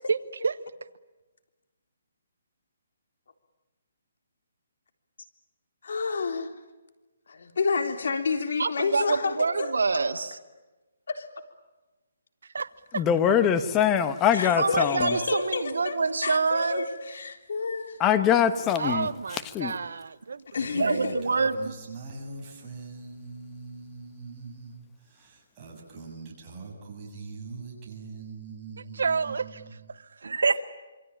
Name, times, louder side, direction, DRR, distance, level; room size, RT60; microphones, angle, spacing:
voice 1, 0.1-0.5 12.5-13.1 18.8-20.4 20.8-21.1 28.9-29.6 29.9-30.1, right 5 dB, 75° right, 1.0 m, -30 dB
voice 2, 5.8-6.6 7.3-10.0 11.1-11.3 14.3-18.0 20.5-21.1, left 4 dB, 70° left, 3.6 m, -30 dB
voice 3, 8.6-10.4 14.6-16.9 20.8-21.7 30.2-30.6, right 4 dB, 90° right, 2.1 m, -26 dB
voice 4, 12.9-15.1 18.0-19.1 19.5-19.7, left 9 dB, 15° left, 1.3 m, -23 dB
voice 5, 20.5-29.9, right 4 dB, 20° right, 7.3 m, -42 dB
27.0 x 24.0 x 8.8 m
hypercardioid pair, 165°, 0 cm